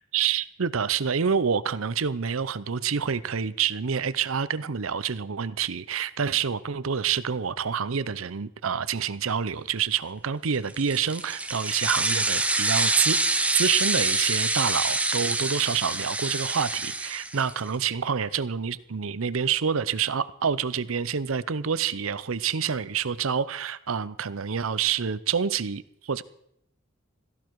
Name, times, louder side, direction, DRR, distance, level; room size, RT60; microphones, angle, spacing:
voice 1, 0.0-13.2 13.5-26.2, right 7 dB, 85° right, 0.7 m, -27 dB
sound 1, 10.7-17.7, right 2 dB, 5° right, 0.8 m, -26 dB
16.5 x 14.5 x 4.7 m
head